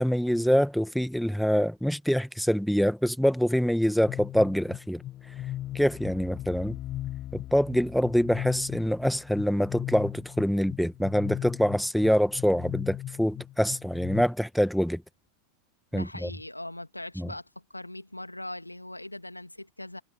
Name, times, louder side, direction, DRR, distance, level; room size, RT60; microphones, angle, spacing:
voice 1, 0.0-5.0 5.7-6.8 7.3-15.0 15.9-16.3 17.2-17.3, equal, ahead, 1.9 m, -25 dB
sound 1, 4.1-14.2, left 13 dB, 35° left, 1.7 m, -38 dB
voice 2, 15.9-20.0, left 1 dB, 85° left, 2.3 m, -40 dB
figure-of-eight pair, 90°, 0 cm